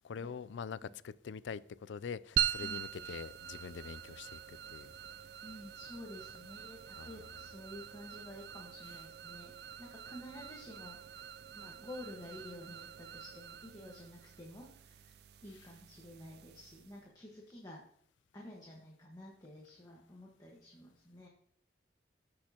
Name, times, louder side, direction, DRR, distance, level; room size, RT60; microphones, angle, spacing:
voice 1, 0.0-4.9 7.0-7.4, left 6 dB, 80° left, 0.4 m, -44 dB
sound 1, 2.4-17.0, right 11 dB, 60° right, 0.4 m, -43 dB
voice 2, 2.6-3.1 5.4-11.2 11.5-15.1 15.4-17.8 18.3-21.3, left 1 dB, 20° left, 1.4 m, -51 dB
14.5 x 6.2 x 2.9 m
head